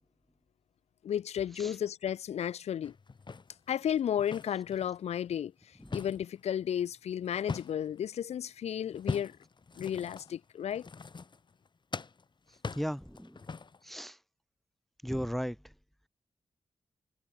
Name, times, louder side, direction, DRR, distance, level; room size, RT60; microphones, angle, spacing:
voice 1, 1.0-2.9 3.7-5.5 5.9-9.3 9.8-10.9, left 9 dB, 75° left, 0.4 m, -33 dB
sound 1, 2.8-4.9 5.3-8.1 8.9-11.7 11.9-13.9, left 4 dB, 45° left, 2.6 m, -41 dB
voice 2, 12.7-13.4 13.8-14.2 15.0-15.6, equal, ahead, 1.0 m, -35 dB
cardioid pair, 75°, 11 cm